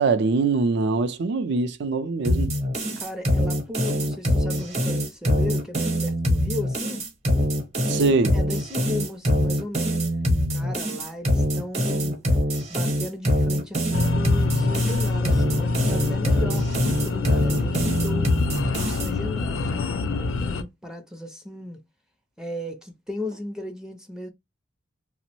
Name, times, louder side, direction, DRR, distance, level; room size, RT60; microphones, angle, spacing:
voice 1, 0.0-2.5 7.9-8.4, right 4 dB, 60° right, 0.4 m, -23 dB
sound 1, 2.2-19.1, equal, 35° right, 0.8 m, -24 dB
voice 2, 3.0-7.0 8.3-10.0 10.5-12.2 12.7-18.5 18.8-21.8 22.4-24.3, left 1 dB, 5° right, 0.4 m, -36 dB
sound 2, 13.9-20.6, left 3 dB, 85° left, 0.4 m, -26 dB
2.9 x 2.0 x 2.9 m
head